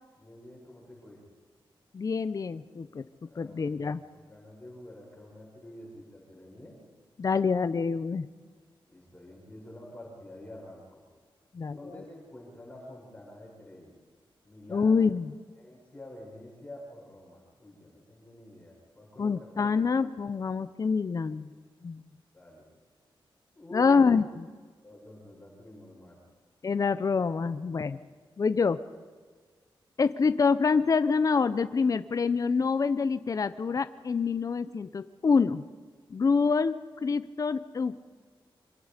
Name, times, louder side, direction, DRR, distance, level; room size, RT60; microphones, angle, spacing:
voice 1, 0.2-1.2 3.3-6.7 8.9-11.0 11.7-13.9 14.4-15.0 15.6-19.8 22.3-22.7 23.6-24.1 24.8-26.2, left 1 dB, 15° left, -3 dB, 7.1 m, -48 dB
voice 2, 1.9-3.0 3.4-4.0 7.2-8.3 11.5-11.8 14.7-15.3 19.2-21.5 21.8-22.0 23.7-24.4 26.6-28.0 28.4-28.8 30.0-35.7 36.1-38.0, left 5 dB, 40° left, 12 dB, 0.8 m, -26 dB
26.0 x 25.5 x 5.2 m, 1.5 s
wide cardioid pair, 150°, 9 cm